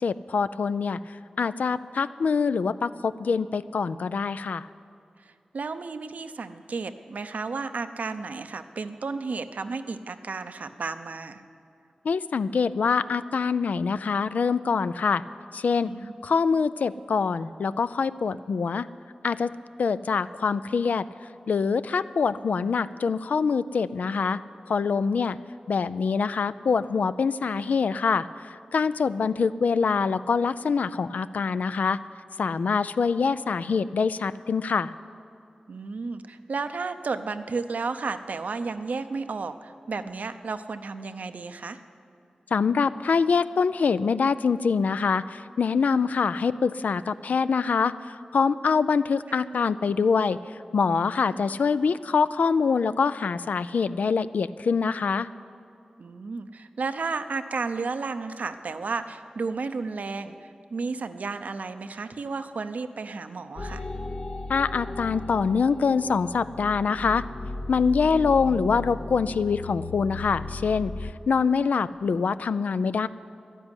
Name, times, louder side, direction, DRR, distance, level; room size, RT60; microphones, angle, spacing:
voice 1, 0.0-1.0 1.4-4.7 12.0-15.2 15.5-15.9 16.2-18.9 19.2-19.5 19.8-21.1 21.5-24.4 24.7-25.4 25.7-28.3 28.7-32.0 32.4-34.9 42.5-50.4 50.7-55.3 64.5-67.2 67.7-73.1, left 5 dB, 90° left, 14 dB, 0.4 m, -24 dB
voice 2, 5.2-11.4 15.8-16.1 21.9-22.0 35.7-41.8 49.3-49.4 56.0-63.9, right 4 dB, 80° right, 9 dB, 0.7 m, -33 dB
sound 1, 63.6-71.1, left 2 dB, 50° left, 0.6 m, -36 dB
11.5 x 10.0 x 9.8 m, 2.5 s
wide cardioid pair, 65°, 3 cm